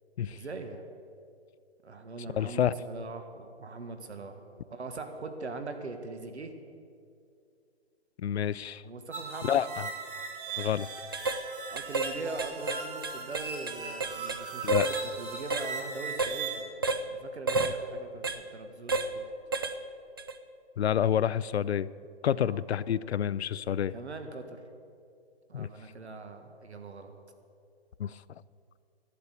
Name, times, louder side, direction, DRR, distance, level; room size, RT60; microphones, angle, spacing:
voice 1, 0.3-0.8 1.8-4.4 4.7-6.5 8.8-9.6 11.7-16.7 17.1-19.3 22.3-22.6 23.9-24.6 25.5-27.1, right 3 dB, 90° right, 7 dB, 1.6 m, -41 dB
voice 2, 2.3-2.7 8.2-8.8 9.4-9.9 10.6-10.9 14.6-14.9 20.8-21.9 22.2-24.0 25.5-25.7 28.0-28.2, left 9 dB, 75° left, 18 dB, 0.6 m, -28 dB
sound 1, 9.1-16.6, right 5 dB, 55° right, 2.6 m, -39 dB
sound 2, 10.5-10.7 11.1-11.4 11.8-12.1 12.4-14.4 14.7-15.0 15.5-15.7 16.2-16.4 16.8-17.0 17.5-17.7 18.2-18.4 18.9-19.1 19.5-19.8 20.2-20.3, right 3 dB, 25° right, 0.3 m, -30 dB
12.0 x 8.8 x 9.3 m, 2.4 s
hypercardioid pair, 150°, 32 cm